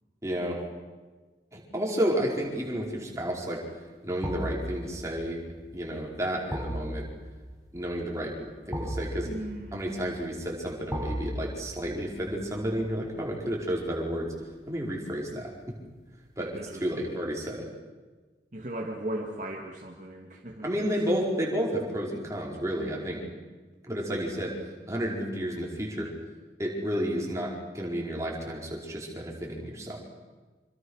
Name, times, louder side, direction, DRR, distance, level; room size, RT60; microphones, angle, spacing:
voice 1, 0.2-0.6 1.5-3.6 4.0-5.4 5.7-7.1 7.7-8.3 8.7-9.3 9.7-14.3 14.7-15.5 16.4-17.7 20.6-23.3 23.8-24.5 24.9-26.1 26.6-30.0, equal, 15° right, -2 dB, 4.9 m, -31 dB
sound 1, 2.4-2.8 4.2-15.2 15.5-15.7, equal, ahead, 8.0 m, -39 dB
voice 2, 9.2-10.1 16.4-17.1 18.5-20.7, right 1 dB, 45° right, 0 dB, 2.3 m, -38 dB
26.5 x 25.5 x 6.5 m, 1.3 s
head